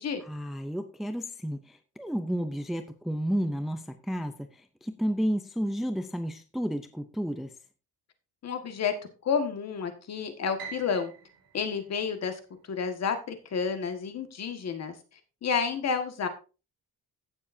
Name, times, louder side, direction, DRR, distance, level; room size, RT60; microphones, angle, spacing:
voice 1, 0.2-7.5, equal, ahead, 8 dB, 0.5 m, -32 dB
voice 2, 8.4-8.9 9.2-11.1 11.5-12.4 12.7-14.9 15.4-16.3, left 6 dB, 45° left, 7 dB, 1.7 m, -30 dB
Piano, 10.6-12.8, right 7 dB, 65° right, 6.1 m, -46 dB
16.0 x 7.1 x 2.7 m, 0.33 s
cardioid pair, 155°, 37 cm